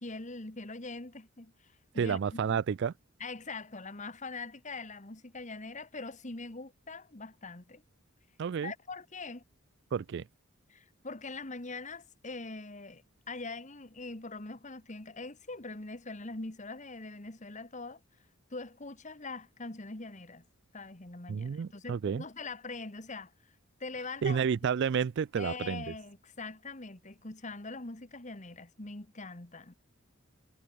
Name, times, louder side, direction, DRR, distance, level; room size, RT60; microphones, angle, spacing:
voice 1, 0.0-2.2 3.2-7.8 8.6-9.4 10.7-18.0 18.5-20.4 20.7-23.3 23.8-24.4 25.4-29.7, left 3 dB, 35° left, 1.7 m, -42 dB
voice 2, 2.0-2.9 8.4-8.7 9.9-10.2 21.3-22.2 24.2-25.9, right 6 dB, 55° right, 0.3 m, -30 dB
head